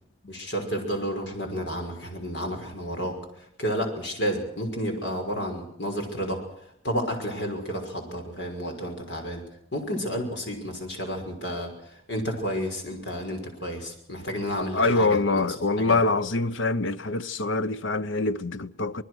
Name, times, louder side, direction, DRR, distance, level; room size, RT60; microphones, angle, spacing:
voice 1, 0.3-3.2 3.6-6.4 6.8-9.4 9.7-15.4 15.8-16.0, equal, 65° left, 5.7 m, -31 dB
voice 2, 14.7-19.0, left 3 dB, 80° left, 0.9 m, -24 dB
26.0 x 20.0 x 6.4 m
head